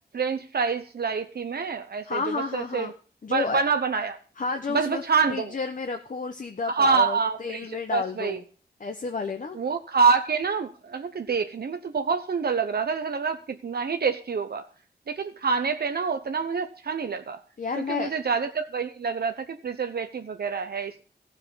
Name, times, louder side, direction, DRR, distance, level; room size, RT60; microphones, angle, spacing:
voice 1, 0.1-2.9 3.3-4.2 4.7-5.5 6.7-8.4 9.5-14.7 15.1-17.4 17.9-21.0, right 5 dB, 65° right, 7 dB, 0.9 m, -26 dB
voice 2, 2.0-2.9 3.2-3.6 4.4-8.4 8.8-9.6 17.6-18.1, left 4 dB, 50° left, 5 dB, 1.1 m, -31 dB
14.5 x 6.5 x 7.1 m, 0.40 s
wide cardioid pair, 85°, 18 cm